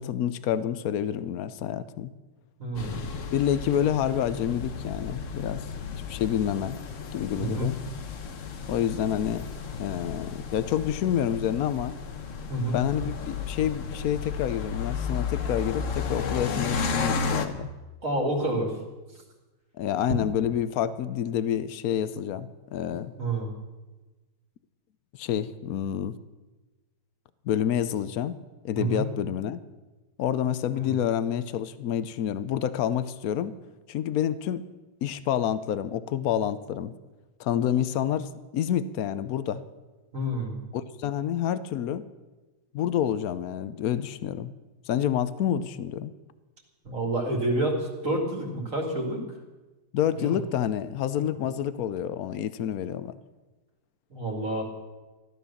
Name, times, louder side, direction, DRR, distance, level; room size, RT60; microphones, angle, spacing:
voice 1, 0.0-2.1 3.3-5.7 6.1-6.8 7.1-7.8 8.7-9.4 9.8-11.9 12.7-17.7 19.8-23.1 25.2-26.1 27.5-28.3 28.6-29.6 30.2-33.5 33.9-34.6 35.0-36.9 37.4-39.6 40.7-42.0 42.7-44.5 44.9-46.1 49.9-53.1, left 10 dB, 80° left, 14 dB, 0.8 m, -28 dB
voice 2, 2.6-3.0 7.4-7.7 12.5-12.8 18.0-18.7 23.2-23.5 28.8-29.1 30.9-31.0 40.1-40.5 46.8-49.2 50.2-50.4 54.1-54.6, right 1 dB, 35° right, 1 dB, 2.8 m, -28 dB
sound 1, 2.7-17.5, left 5 dB, 45° left, 1.1 m, -33 dB
15.0 x 12.5 x 7.2 m, 1.2 s
omnidirectional pair, 2.4 m